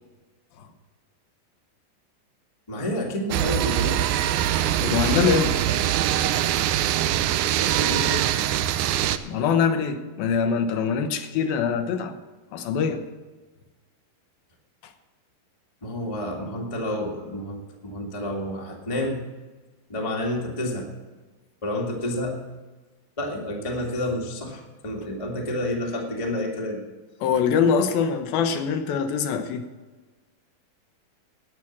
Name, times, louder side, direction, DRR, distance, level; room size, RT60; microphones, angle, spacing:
voice 1, 2.7-4.0 7.4-8.3 15.8-19.2 19.9-20.9 21.6-22.3 23.2-26.8, left 1 dB, 20° left, -1 dB, 0.9 m, -29 dB
sound 1, 3.3-9.2, right 12 dB, 90° right, 1.7 m, -23 dB
voice 2, 4.8-5.6 9.2-12.1 12.5-13.0 27.2-29.6, left 6 dB, 85° left, 7 dB, 2.8 m, -23 dB
11.0 x 9.0 x 7.2 m, 1.3 s
omnidirectional pair, 4.1 m